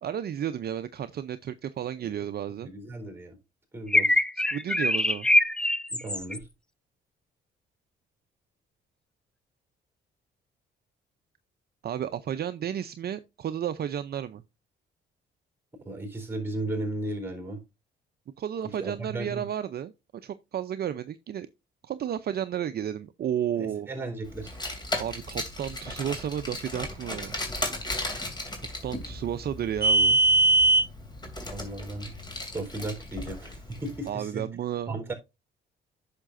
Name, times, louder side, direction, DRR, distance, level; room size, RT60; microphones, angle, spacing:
voice 1, 0.0-2.7 4.4-5.3 11.8-14.4 18.4-19.9 20.2-21.5 21.8-23.9 25.0-27.4 28.8-30.2 34.1-35.1, right 9 dB, 50° right, 0.6 m, -32 dB
voice 2, 2.6-3.4 3.7-4.2 5.9-6.5 15.8-17.6 18.8-19.5 23.6-24.6 31.5-32.1 32.5-34.5 34.9-35.1, right 2 dB, 10° right, 3.9 m, -35 dB
sound 1, 3.9-6.4, left 1 dB, 5° left, 0.4 m, -23 dB
Car, 24.4-33.9, right 2 dB, 20° left, 2.8 m, -27 dB
9.8 x 6.7 x 2.6 m
cardioid pair, 90°, 20 cm